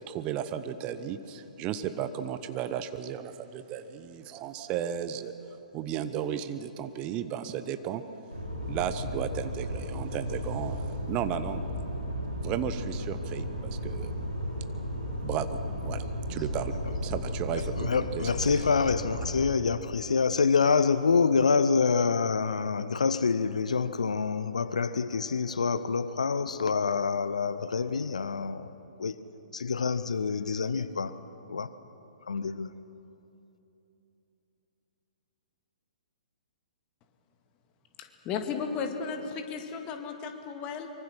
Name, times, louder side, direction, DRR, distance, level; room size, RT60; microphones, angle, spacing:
voice 1, 0.0-5.3 5.7-8.0 8.7-11.6 12.4-14.2 15.2-18.7, right 9 dB, 25° right, 0.8 m, -34 dB
sound 1, 8.3-19.4, equal, 90° right, 4.6 m, -34 dB
voice 2, 17.8-29.2 29.5-31.1 31.5-31.7 32.3-32.7, left 5 dB, 65° left, 0.7 m, -27 dB
voice 3, 38.0-40.9, left 6 dB, 25° left, 2.1 m, -35 dB
24.5 x 24.0 x 6.3 m
figure-of-eight pair, 120°, 4 cm